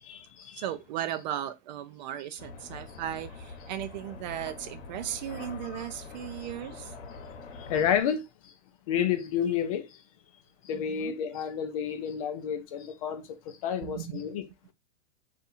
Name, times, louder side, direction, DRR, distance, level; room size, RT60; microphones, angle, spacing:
voice 1, 0.0-0.6 2.9-3.0 7.5-8.5 8.9-10.0 10.6-14.5, left 8 dB, 30° left, 0.4 m, -30 dB
voice 2, 0.6-6.9 10.7-11.1 13.8-14.2, right 11 dB, 40° right, 0.4 m, -36 dB
sound 1, 2.4-8.0, left 4 dB, 80° left, 1.0 m, -44 dB
2.6 x 2.5 x 4.0 m
supercardioid pair, 155°, 36 cm